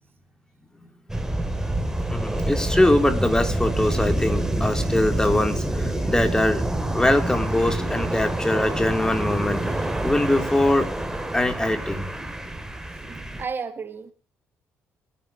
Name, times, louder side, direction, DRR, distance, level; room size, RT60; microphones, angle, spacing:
sound 1, 1.1-13.4, right 1 dB, 10° right, 3.0 m, -27 dB
voice 1, 1.6-6.6 6.9-10.9 11.3-12.1, left 1 dB, 15° left, 8 dB, 3.3 m, -23 dB
voice 2, 13.1-14.1, right 5 dB, 40° right, 11 dB, 1.6 m, -33 dB
23.5 x 10.5 x 3.1 m, 0.37 s
supercardioid pair, 60°, 5 cm